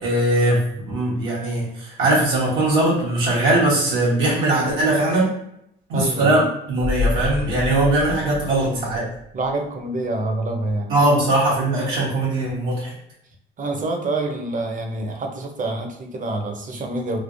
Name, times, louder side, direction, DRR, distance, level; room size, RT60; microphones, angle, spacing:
voice 1, 0.0-5.3 5.9-6.4 6.7-9.1 10.9-12.9, right 2 dB, 85° right, -6 dB, 1.1 m, -20 dB
voice 2, 5.9-6.5 8.6-8.9 9.3-11.2 13.6-17.2, right 2 dB, 40° right, 3 dB, 0.6 m, -27 dB
sound 1, 6.8-9.5 9.8-9.9, left 3 dB, 30° left, 0.4 m, -28 dB
3.2 x 2.0 x 2.5 m, 0.78 s
cardioid pair, 90°, 20 cm